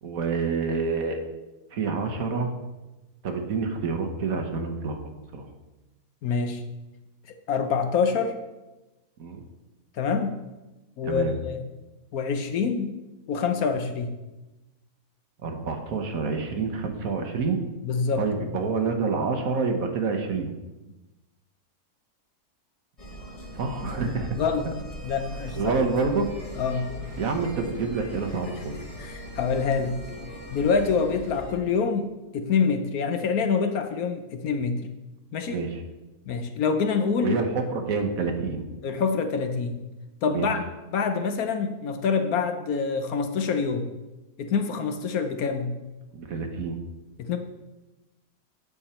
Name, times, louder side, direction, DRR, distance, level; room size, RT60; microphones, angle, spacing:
voice 1, 0.0-1.2 1.7-2.5 3.2-5.4 9.2-9.4 11.0-11.3 15.4-17.6 18.2-20.5 23.5-24.4 25.5-26.3 27.2-28.8 35.4-35.8 37.2-38.6 40.3-40.5 46.1-46.8, right 4 dB, 65° right, 5 dB, 1.4 m, -27 dB
voice 2, 6.2-6.6 7.5-8.3 10.0-10.4 11.0-11.6 12.1-13.0 13.3-14.1 17.8-18.5 24.4-24.7 25.0-25.8 26.6-26.9 29.0-30.0 30.5-34.9 35.3-35.6 36.3-37.4 38.8-39.8 40.2-40.6 40.9-43.9 44.4-45.7 47.2-47.4, left 5 dB, 70° left, 7 dB, 1.2 m, -26 dB
sound 1, 23.0-31.5, equal, 25° left, 1.2 m, -40 dB
8.6 x 7.0 x 4.3 m, 1.1 s
omnidirectional pair, 1.7 m